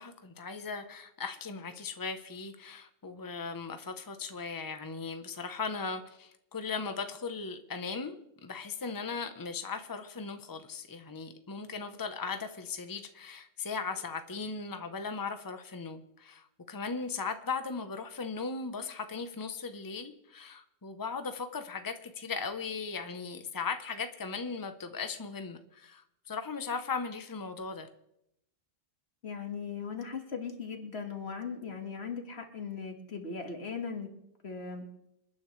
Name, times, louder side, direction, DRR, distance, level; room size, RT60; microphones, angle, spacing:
voice 1, 0.0-27.9, left 5 dB, 20° left, 8 dB, 0.8 m, -38 dB
voice 2, 29.2-34.1 34.4-34.9, left 5 dB, 85° left, 4 dB, 2.0 m, -38 dB
27.5 x 9.7 x 3.3 m, 0.81 s
omnidirectional pair, 1.1 m